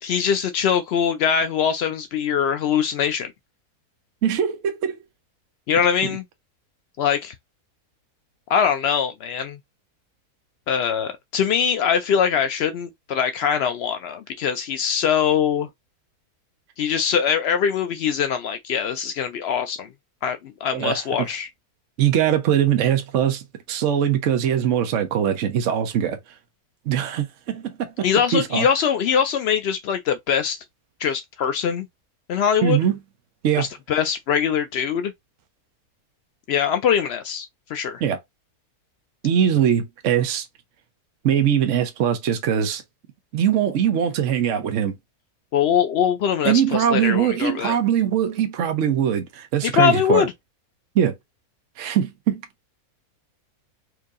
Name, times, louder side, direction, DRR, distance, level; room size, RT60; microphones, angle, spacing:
voice 1, 0.0-3.3 5.7-6.2 7.0-7.3 8.5-9.6 10.7-15.7 16.8-19.9 20.2-21.5 28.0-30.6 31.0-31.9 32.3-32.8 33.6-35.1 36.5-38.0 45.5-47.8 49.6-50.3, left 8 dB, 85° left, 0.5 m, -22 dB
voice 2, 4.2-5.0 20.7-21.3 22.0-26.2 26.9-27.9 28.3-28.7 32.6-33.0 33.4-33.7 38.0-38.2 39.2-40.5 41.2-42.8 43.3-44.9 46.4-50.2 50.9-51.1 51.8-52.4, right 9 dB, 60° right, 1.0 m, -21 dB
4.6 x 2.7 x 2.5 m
omnidirectional pair, 1.6 m